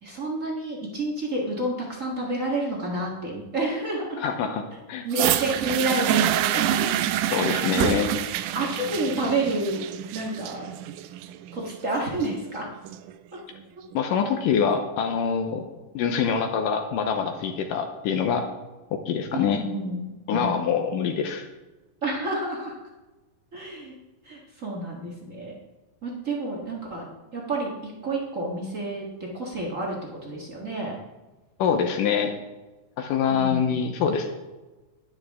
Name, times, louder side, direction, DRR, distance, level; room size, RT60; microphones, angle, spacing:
voice 1, 0.0-4.2 5.0-6.9 7.7-7.9 8.5-9.8 10.1-10.7 11.5-12.7 13.3-13.4 19.3-20.6 22.0-22.8 23.5-23.9 24.2-25.5 26.0-27.1 27.3-29.1 29.3-30.0 30.2-31.0 33.3-33.7, right 2 dB, 50° right, -2 dB, 0.9 m, -29 dB
voice 2, 4.2-4.6 4.9-5.1 7.3-8.1 13.9-15.6 15.9-18.5 18.9-19.6 20.3-21.4 31.6-32.3 33.0-34.3, left 7 dB, 75° left, 5 dB, 2.3 m, -25 dB
sound 1, 5.1-13.1 13.9-14.0, right 12 dB, 85° right, 1.8 m, -27 dB
11.5 x 10.5 x 3.6 m, 1.2 s
omnidirectional pair, 4.2 m